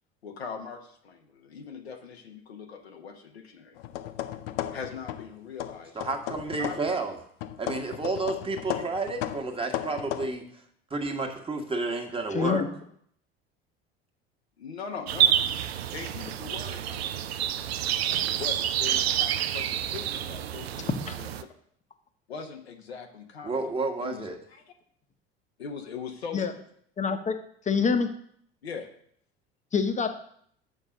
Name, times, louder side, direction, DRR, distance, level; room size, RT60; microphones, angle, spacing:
voice 1, 0.2-3.8 4.7-6.1 6.5-7.0 14.6-15.4 15.9-17.5 18.3-21.3 22.3-23.7 24.0-24.2 24.5-24.6 25.6-26.6 28.6-28.9, left 6 dB, 85° left, 3 dB, 1.1 m, -41 dB
sound 1, 3.8-5.3 5.6-7.0 7.4-10.3, left 12 dB, 70° left, 0.6 m, -35 dB
voice 2, 5.9-7.2 7.6-10.6 10.9-12.6 23.4-24.4, right 3 dB, 15° right, 3 dB, 1.5 m, -31 dB
voice 3, 12.3-12.7 21.1-21.2 26.3-26.5 27.0-27.3 27.7-28.1 29.7-30.1, left 5 dB, 25° left, 7 dB, 1.0 m, -25 dB
sound 2, 15.1-21.4, right 10 dB, 80° right, 0.5 m, -28 dB
6.6 x 5.4 x 6.4 m, 0.66 s
hypercardioid pair, 70°, 31 cm